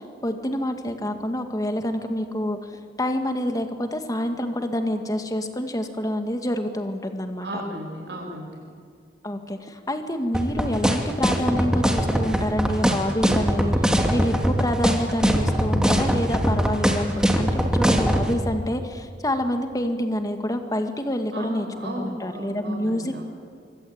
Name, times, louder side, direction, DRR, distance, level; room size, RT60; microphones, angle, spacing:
voice 1, 0.0-2.7 3.0-7.6 9.2-23.2, left 1 dB, 20° left, 6 dB, 1.9 m, -27 dB
voice 2, 7.4-8.7 21.3-23.2, right 1 dB, 75° right, -1 dB, 7.5 m, -34 dB
sound 1, 10.3-18.2, equal, 5° right, 2.3 m, -20 dB
25.0 x 24.5 x 8.8 m, 2.2 s
head